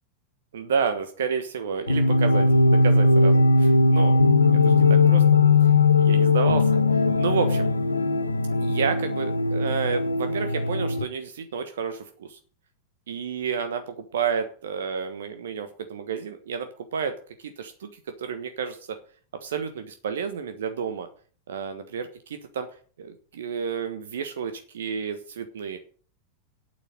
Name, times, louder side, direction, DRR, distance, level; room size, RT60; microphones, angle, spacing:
voice 1, 0.5-4.2 4.5-5.2 6.0-6.7 7.2-7.7 8.6-12.4 13.1-17.1 17.4-17.9 18.2-18.8 19.4-21.1 21.5-22.7 23.0-25.8, right 6 dB, 60° right, 9 dB, 1.3 m, -30 dB
sound 1, 1.9-11.0, left 3 dB, 80° left, 0.7 m, -19 dB
8.9 x 7.8 x 8.9 m, 0.43 s
figure-of-eight pair, 90°, 0 cm